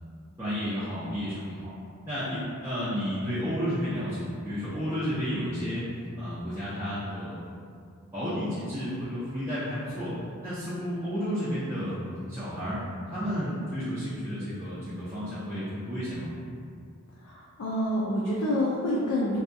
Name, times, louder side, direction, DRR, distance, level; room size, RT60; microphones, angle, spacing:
voice 1, 0.4-1.7 2.0-5.8 6.2-7.4 8.1-10.1 10.4-12.0 12.3-12.8 13.1-16.3, equal, 10° right, -13 dB, 0.5 m, -32 dB
voice 2, 17.2-19.4, left 1 dB, 75° left, -5 dB, 0.4 m, -27 dB
2.7 x 2.3 x 2.5 m, 2.3 s
head